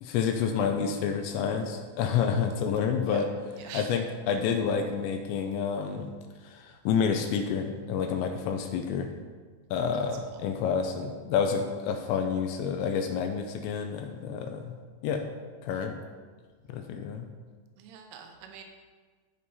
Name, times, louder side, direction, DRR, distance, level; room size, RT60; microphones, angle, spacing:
voice 1, 0.0-3.3 3.7-6.1 6.4-9.1 9.7-14.8 15.0-15.2 15.6-16.0 16.7-17.2, left 6 dB, 80° left, 5 dB, 2.7 m, -29 dB
voice 2, 3.6-4.0 9.9-10.4 17.8-18.6, right 7 dB, 90° right, 4 dB, 3.2 m, -45 dB
15.0 x 5.5 x 4.1 m, 1.5 s
omnidirectional pair, 5.6 m